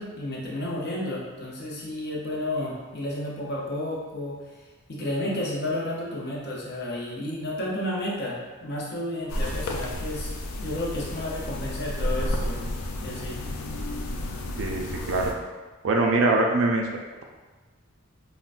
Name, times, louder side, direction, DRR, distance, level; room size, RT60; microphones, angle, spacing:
voice 1, 0.0-4.4 4.9-10.3 10.6-12.7 13.0-13.4, left 1 dB, 50° left, -4 dB, 0.6 m, -31 dB
sound 1, 9.3-15.3, left 1 dB, 90° left, 0.4 m, -31 dB
voice 2, 14.6-15.3 15.8-17.2, right 2 dB, 60° right, 1 dB, 0.3 m, -23 dB
3.6 x 2.1 x 2.4 m, 1.3 s
head